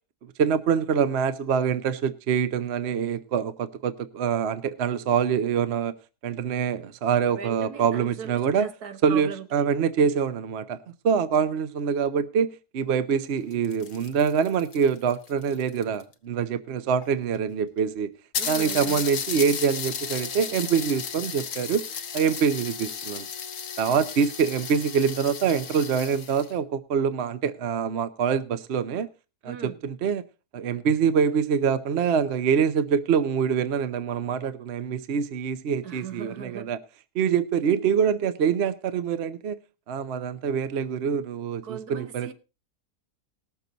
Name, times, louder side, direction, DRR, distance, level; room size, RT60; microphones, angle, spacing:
voice 1, 0.4-5.9 6.2-8.7 9.0-10.8 11.0-18.1 18.5-21.8 22.1-23.3 23.8-29.1 29.4-30.2 30.5-36.8 37.1-39.6 39.9-42.3, right 7 dB, 50° right, 0.9 m, -25 dB
voice 2, 7.4-9.7 18.4-19.0 29.4-29.9 35.8-36.7 41.6-42.3, right 7 dB, 75° right, 1.6 m, -39 dB
sound 1, 13.4-16.1 17.0-17.1 17.3-17.4 17.8-17.9 18.3-26.5, left 7 dB, 60° left, 1.3 m, -34 dB
19.0 x 6.9 x 3.9 m
omnidirectional pair, 1.6 m